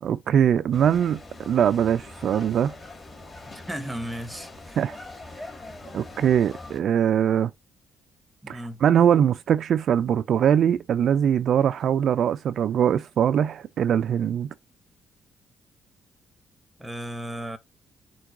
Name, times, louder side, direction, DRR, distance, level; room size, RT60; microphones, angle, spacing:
voice 1, 0.0-2.7 4.8-5.0 5.9-7.5 8.5-14.5, right 9 dB, 65° right, 0.3 m, -22 dB
sound 1, 0.7-6.8, left 2 dB, 30° left, 1.5 m, -43 dB
voice 2, 3.5-4.8 8.4-8.8 16.8-17.6, right 1 dB, 5° right, 0.7 m, -35 dB
4.5 x 2.3 x 4.6 m
cardioid pair, 90°, 0 cm